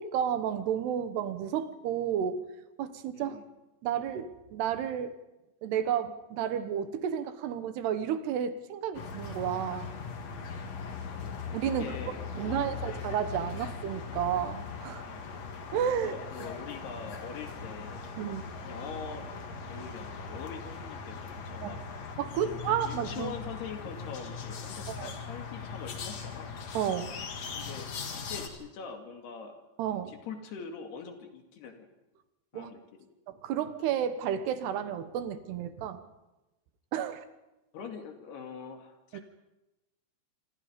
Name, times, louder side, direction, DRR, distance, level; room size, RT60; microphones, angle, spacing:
voice 1, 0.0-2.4 2.8-3.4 3.8-5.1 5.6-9.9 11.5-12.0 12.3-15.0 15.7-16.2 18.2-18.4 21.6-21.7 22.2-23.3 25.0-25.1 26.7-27.1 29.8-30.1 32.5-32.7 33.3-36.0 36.9-37.2 39.1-39.2, right 9 dB, 75° right, 11 dB, 3.2 m, -31 dB
voice 2, 3.1-3.5 11.1-13.0 15.0-15.4 16.0-18.4 18.6-21.8 22.4-26.6 27.5-29.6 29.9-31.9 32.5-33.1 37.7-39.2, left 6 dB, 70° left, 4 dB, 4.4 m, -44 dB
sound 1, 8.9-28.5, left 5 dB, 45° left, 2.7 m, -40 dB
27.0 x 25.5 x 5.3 m, 0.99 s
omnidirectional pair, 4.9 m